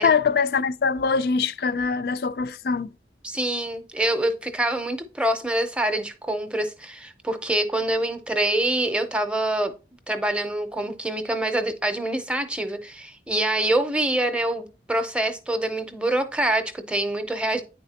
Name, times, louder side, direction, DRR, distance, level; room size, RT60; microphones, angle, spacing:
voice 1, 0.0-2.9, left 5 dB, 60° left, 0.3 m, -23 dB
voice 2, 3.2-9.7 10.1-17.6, right 1 dB, 5° right, 0.6 m, -25 dB
9.4 x 4.1 x 2.8 m
head